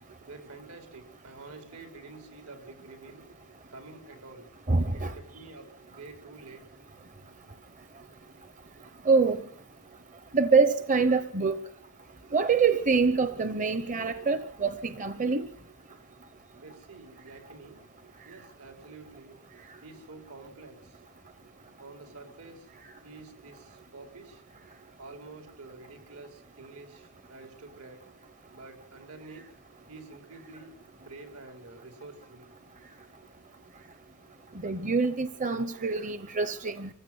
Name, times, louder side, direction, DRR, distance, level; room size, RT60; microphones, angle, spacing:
voice 1, 0.3-3.3 3.7-4.5 4.9-6.8 16.6-17.8 18.2-19.4 19.8-21.0 21.8-22.7 23.0-24.4 25.0-28.1 28.5-29.6 29.9-32.5, right 3 dB, 80° right, 5.4 m, -48 dB
voice 2, 4.7-5.1 9.1-9.4 10.3-11.6 12.3-15.5 34.6-36.9, right 4 dB, 35° right, 0.9 m, -25 dB
25.0 x 15.5 x 9.4 m
head